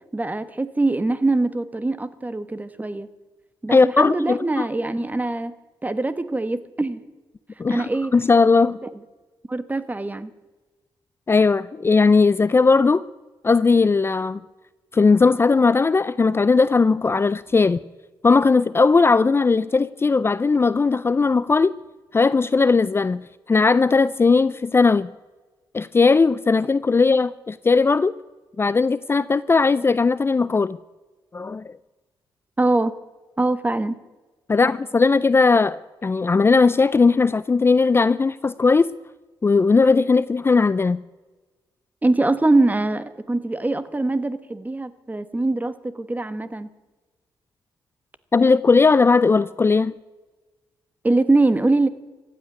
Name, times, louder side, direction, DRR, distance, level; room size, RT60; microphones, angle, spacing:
voice 1, 0.1-3.1 3.6-5.5 5.8-7.1 7.7-8.1 8.8-8.9 9.5-10.3 32.6-32.9 33.4-33.9 42.0-46.7 51.0-51.9, right 2 dB, 20° right, 1.2 m, -23 dB
voice 2, 3.7-4.6 7.6-7.8 8.1-8.8 11.3-13.0 13.4-14.4 14.9-17.8 18.2-21.7 22.1-25.1 25.7-28.1 28.6-30.8 31.3-31.7 34.5-38.9 39.4-41.0 48.3-49.9, left 4 dB, 25° left, 0.5 m, -18 dB
15.0 x 8.9 x 9.6 m
cardioid pair, 80°, 9 cm